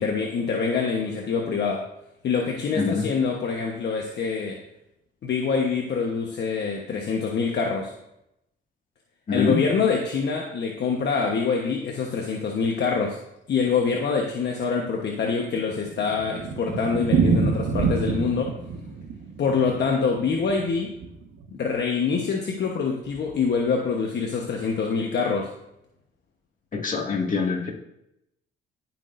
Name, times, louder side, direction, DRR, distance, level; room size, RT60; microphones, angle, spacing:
voice 1, 0.0-1.8 2.2-4.6 5.2-7.9 9.3-13.2 13.5-18.5 19.4-20.9 21.5-25.5, left 5 dB, 60° left, 1 dB, 1.2 m, -25 dB
voice 2, 2.7-3.1 9.3-9.6 26.7-27.7, left 4 dB, 40° left, 0 dB, 2.0 m, -24 dB
Thunder, 15.2-21.5 21.7-21.8 22.1-22.2 22.5-22.6 23.1-23.5, right 5 dB, 80° right, 1.4 m, -27 dB
16.0 x 6.0 x 2.6 m, 0.82 s
cardioid pair, 90°, 20 cm